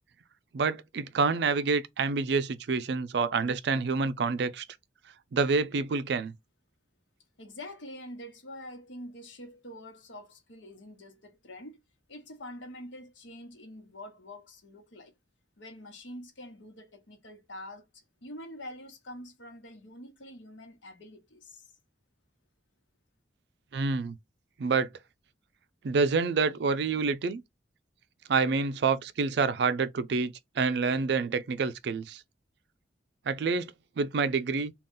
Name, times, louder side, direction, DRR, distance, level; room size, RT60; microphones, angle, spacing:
voice 1, 0.5-4.6 5.3-6.3 23.7-24.2 24.6-24.9 25.8-27.4 28.3-32.2 33.3-34.7, right 4 dB, 60° right, 0.4 m, -27 dB
voice 2, 7.4-11.8 12.1-15.1 15.6-21.6, left 1 dB, 80° left, 1.1 m, -46 dB
3.7 x 2.4 x 3.7 m
head